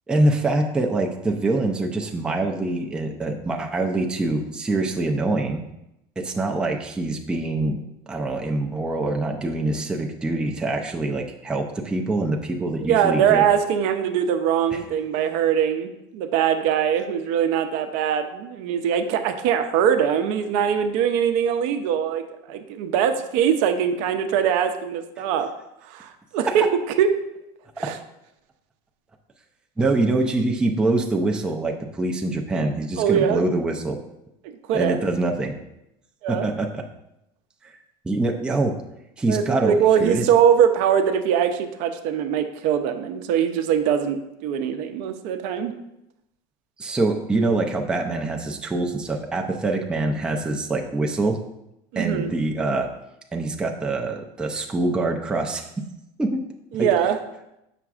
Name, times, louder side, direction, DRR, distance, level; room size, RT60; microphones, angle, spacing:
voice 1, 0.1-5.6 6.2-7.8 8.1-13.4 14.7-14.8 26.5-26.6 27.8-27.9 29.8-34.0 34.7-35.5 36.3-36.8 38.0-38.8 39.2-40.3 46.8-51.4 52.0-52.9 53.3-55.8 56.2-56.4 56.8-56.9, right 2 dB, 5° right, 1 dB, 0.4 m, -24 dB
voice 2, 12.8-25.5 25.9-27.1 27.8-27.9 33.0-33.4 34.4-35.0 36.2-36.5 39.3-45.7 51.9-52.3 56.7-57.2, right 8 dB, 65° right, 7 dB, 0.6 m, -22 dB
7.0 x 5.8 x 2.4 m, 0.85 s
cardioid pair, 145°, 13 cm